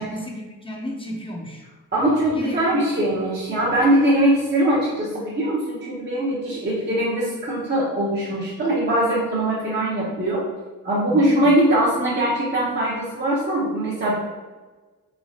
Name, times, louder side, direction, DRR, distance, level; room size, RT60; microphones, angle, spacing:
voice 1, 0.0-1.7 2.3-3.0 11.1-11.5, equal, 15° left, 0 dB, 0.6 m, -33 dB
voice 2, 1.9-10.4 10.8-14.1, right 1 dB, 30° right, -7 dB, 0.8 m, -21 dB
3.2 x 3.0 x 2.7 m, 1.3 s
wide cardioid pair, 85°, 35 cm